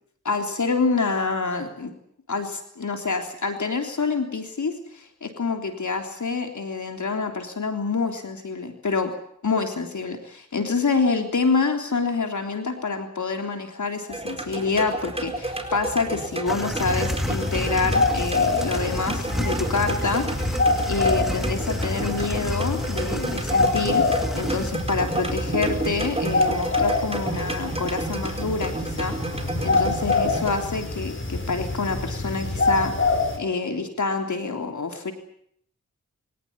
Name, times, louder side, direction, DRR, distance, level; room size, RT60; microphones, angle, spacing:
voice 1, 0.3-1.9 2.3-9.1 9.4-20.5 20.9-29.1 29.6-32.9 33.4-35.1, left 4 dB, 75° left, 5 dB, 3.5 m, -27 dB
sound 1, 14.1-30.6, right 2 dB, 20° right, 4.6 m, -31 dB
sound 2, 16.5-24.7, equal, ahead, 1.9 m, -32 dB
sound 3, 16.8-33.4, left 3 dB, 40° left, 5.5 m, -26 dB
24.0 x 18.0 x 9.8 m, 0.70 s
cardioid pair, 50°, 30 cm